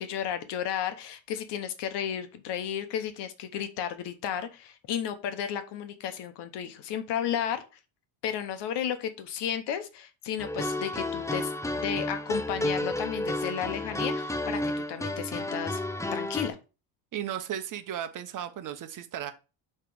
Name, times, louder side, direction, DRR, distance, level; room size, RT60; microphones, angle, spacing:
voice 1, 0.0-7.6 8.2-15.8 16.1-16.6, left 9 dB, 65° left, 1.1 m, -33 dB
sound 1, 10.4-16.5, left 1 dB, 5° left, 0.6 m, -31 dB
voice 2, 17.1-19.3, right 10 dB, 45° right, 1.0 m, -35 dB
7.5 x 3.3 x 4.8 m
cardioid pair, 115°, 45 cm